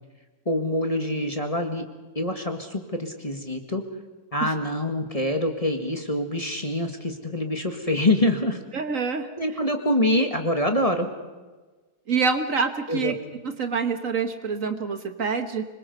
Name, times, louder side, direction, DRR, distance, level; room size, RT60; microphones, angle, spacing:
voice 1, 0.4-1.8 2.1-3.8 4.3-8.6 9.4-11.1 12.9-13.1, left 1 dB, 20° left, 5 dB, 1.8 m, -25 dB
voice 2, 8.7-9.3 12.1-13.1 13.6-15.6, right 5 dB, 55° right, 8 dB, 1.5 m, -26 dB
25.5 x 22.0 x 5.4 m, 1.3 s
omnidirectional pair, 1.7 m